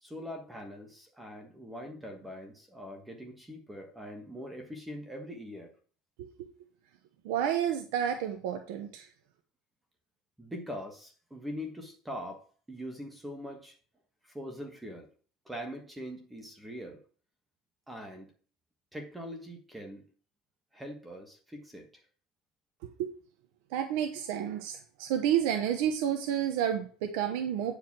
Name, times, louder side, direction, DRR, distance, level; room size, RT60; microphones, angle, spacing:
voice 1, 0.0-5.7 10.4-13.8 14.2-15.1 15.4-17.0 17.9-18.3 18.9-20.0 20.7-21.9, equal, 5° right, 3 dB, 1.3 m, -42 dB
voice 2, 7.2-9.1 23.0-23.1 23.7-27.7, right 9 dB, 85° right, 6 dB, 0.9 m, -30 dB
9.1 x 4.9 x 6.0 m, 0.42 s
cardioid pair, 165°, 0 cm